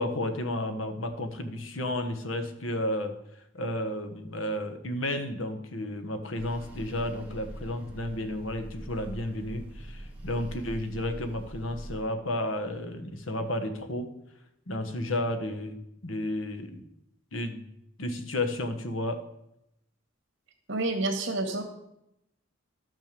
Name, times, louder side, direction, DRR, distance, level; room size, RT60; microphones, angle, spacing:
voice 1, 0.0-3.1 3.5-14.1 14.7-15.8 16.0-16.8 17.3-17.6 18.0-19.2, left 1 dB, 80° left, 7 dB, 1.3 m, -32 dB
sound 1, 6.4-12.0, right 1 dB, 10° right, 2.1 m, -43 dB
voice 2, 20.7-21.6, right 2 dB, 65° right, 4 dB, 2.1 m, -28 dB
12.5 x 6.4 x 6.8 m, 0.82 s
head